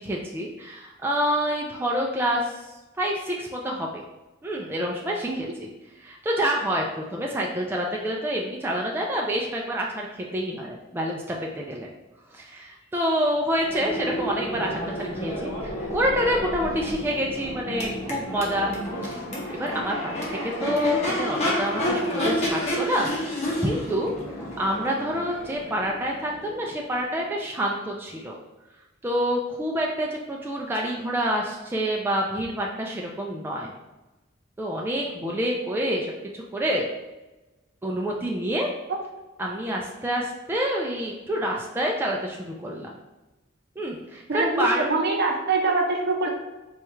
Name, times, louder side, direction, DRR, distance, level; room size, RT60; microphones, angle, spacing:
voice 1, 0.0-2.6 3.0-4.0 4.4-5.7 6.0-11.9 12.3-18.7 19.0-19.2 19.5-23.1 23.6-24.1 24.6-28.4 29.0-33.7 34.6-36.8 37.8-38.7 39.4-43.0 43.8-44.9, equal, 10° right, -2 dB, 0.3 m, -27 dB
Crowd / Race car auto racing / Accelerating revving vroom, 13.5-27.3, equal, 35° left, 0.8 m, -30 dB
voice 2, 44.3-46.3, right 3 dB, 55° right, 1 dB, 0.6 m, -24 dB
4.3 x 2.3 x 3.0 m, 1.1 s
head